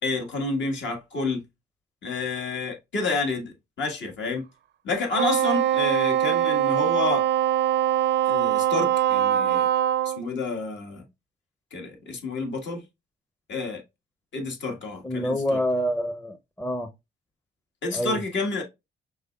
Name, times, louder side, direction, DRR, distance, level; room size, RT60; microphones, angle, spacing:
voice 1, 0.0-1.4 2.0-4.4 4.8-7.3 8.3-9.7 10.0-11.0 11.7-12.8 13.5-13.8 14.3-15.6 17.8-18.6, left 3 dB, 65° left, 1.6 m, -29 dB
Wind instrument woodwind instrument, 5.1-10.2, right 11 dB, 60° right, 0.5 m, -22 dB
voice 2, 15.0-16.9 17.9-18.2, equal, 10° left, 0.6 m, -27 dB
5.3 x 3.6 x 2.3 m
cardioid pair, 90°, 20 cm